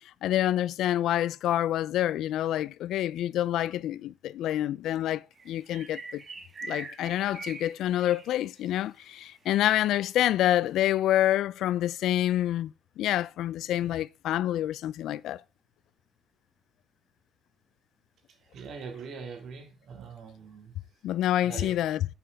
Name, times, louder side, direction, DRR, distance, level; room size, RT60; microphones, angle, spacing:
voice 1, 0.2-6.2 6.6-12.7 13.0-15.4 21.0-22.1, left 12 dB, 85° left, 0.3 m, -27 dB
sound 1, 5.4-8.8 9.0-9.1 9.6-9.7, right 3 dB, 40° right, 2.2 m, -42 dB
voice 2, 18.5-20.8 21.4-21.8, right 5 dB, 70° right, 2.2 m, -42 dB
7.5 x 7.0 x 3.4 m
cardioid pair, 90°, 0 cm